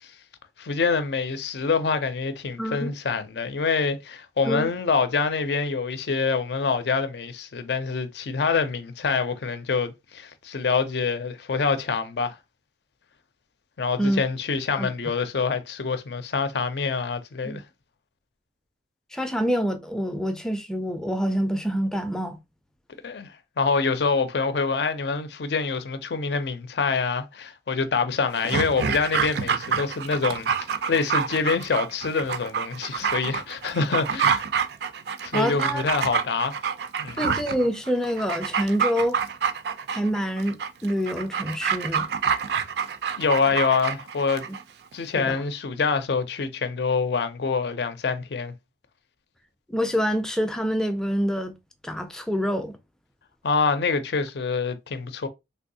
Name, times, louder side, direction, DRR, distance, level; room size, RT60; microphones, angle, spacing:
voice 1, 0.6-12.4 13.8-17.6 23.0-23.3 23.6-34.4 35.2-36.5 37.0-37.2 43.2-44.4 44.9-48.5 53.4-55.3, left 5 dB, 70° left, 0.5 m, -26 dB
voice 2, 2.6-2.9 4.5-4.7 14.0-14.2 14.8-14.9 17.4-17.6 19.1-22.4 35.3-35.8 37.2-39.2 39.9-42.1 45.1-45.3 49.7-51.5 51.8-52.8, equal, 5° left, 0.4 m, -26 dB
Dog, 28.3-44.6 44.9-45.0, right 6 dB, 65° right, 0.4 m, -27 dB
3.4 x 2.6 x 2.7 m
head